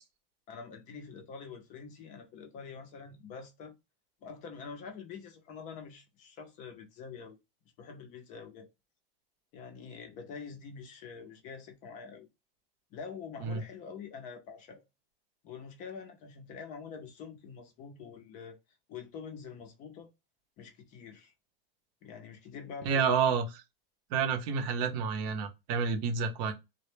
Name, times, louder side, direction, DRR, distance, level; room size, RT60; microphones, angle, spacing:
voice 1, 0.5-3.8 4.2-7.4 7.8-8.7 9.5-12.3 12.9-14.8 15.4-18.6 18.9-20.1 20.6-21.3 22.0-23.2, left 6 dB, 25° left, 0.5 m, -46 dB
voice 2, 22.9-23.6 24.1-26.5, right 6 dB, 45° right, 0.6 m, -29 dB
2.1 x 2.0 x 3.1 m
supercardioid pair, 145°, 30 cm